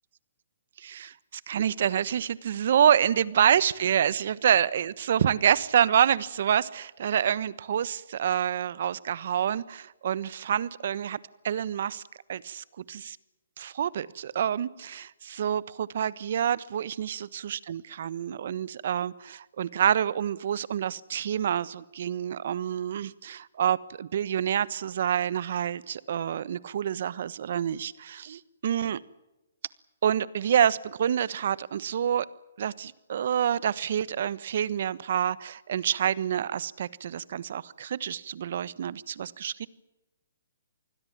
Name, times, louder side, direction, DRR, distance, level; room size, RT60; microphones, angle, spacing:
voice 1, 0.8-11.2 11.4-12.0 12.3-13.2 13.6-29.0 30.0-32.3 32.6-39.7, right 9 dB, 55° right, 19 dB, 1.2 m, -27 dB
27.5 x 20.5 x 7.5 m, 0.98 s
hypercardioid pair, 145°, 0 cm